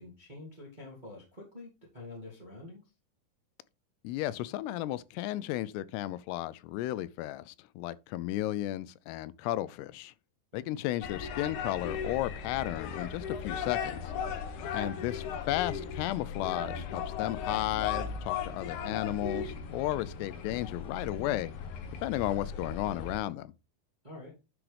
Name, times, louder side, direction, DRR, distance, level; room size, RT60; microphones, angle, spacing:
voice 1, 0.0-2.8 10.5-10.8 24.0-24.3, left 2 dB, 25° right, 1.1 m, -47 dB
voice 2, 4.0-10.1 10.5-14.0 14.7-21.5 22.0-23.5, left 14 dB, 90° left, 2.7 m, -34 dB
sound 1, 11.0-23.2, left 6 dB, 70° left, 1.9 m, -37 dB
10.0 x 5.9 x 3.3 m
omnidirectional pair, 4.7 m